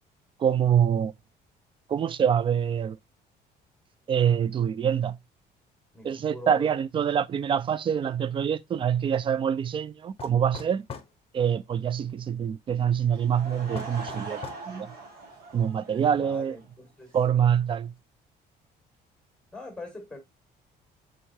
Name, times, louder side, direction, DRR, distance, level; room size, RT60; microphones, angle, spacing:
voice 1, 0.4-1.1 1.9-3.0 4.1-5.2 6.0-10.9 11.3-14.9 15.5-16.6 17.1-17.9, right 8 dB, 30° right, 0.3 m, -25 dB
voice 2, 5.9-6.8 16.1-17.2 19.5-20.2, left 2 dB, 5° left, 1.6 m, -42 dB
sound 1, 10.2-11.1 13.7-14.7, left 7 dB, 35° left, 0.8 m, -40 dB
Laughter / Crowd, 13.1-16.6, right 3 dB, 65° right, 1.7 m, -41 dB
4.4 x 3.7 x 2.7 m
cardioid pair, 110°, 17 cm